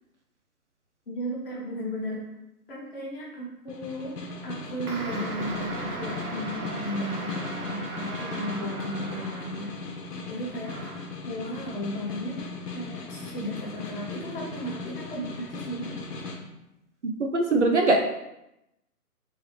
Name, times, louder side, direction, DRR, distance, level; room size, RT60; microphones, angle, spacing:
voice 1, 1.1-2.2 2.7-4.1 4.4-9.7 10.3-10.7 11.2-12.5 12.7-16.0, equal, 35° left, -5 dB, 1.3 m, -35 dB
Snare drum, 3.7-16.4, left 3 dB, 85° left, 0.9 m, -38 dB
sound 1, 4.9-9.9 10.6-11.2, right 3 dB, 65° right, 1.0 m, -37 dB
voice 2, 17.2-18.0, right 2 dB, 50° right, 2 dB, 0.5 m, -21 dB
3.5 x 3.4 x 3.2 m, 0.87 s
figure-of-eight pair, 150°, 47 cm